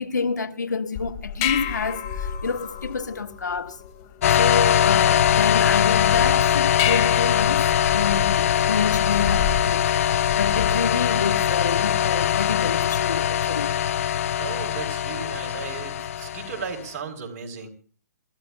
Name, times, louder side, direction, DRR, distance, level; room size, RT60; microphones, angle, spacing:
voice 1, 0.0-3.8 4.4-13.7, left 5 dB, 85° left, 1.3 m, -28 dB
sound 1, 1.0-10.9, left 8 dB, 35° left, 2.1 m, -31 dB
sound 2, 4.2-16.8, left 10 dB, 50° left, 0.6 m, -22 dB
voice 2, 14.4-17.7, right 5 dB, 50° right, 3.8 m, -35 dB
28.0 x 14.0 x 2.3 m
hypercardioid pair, 140°, 9 cm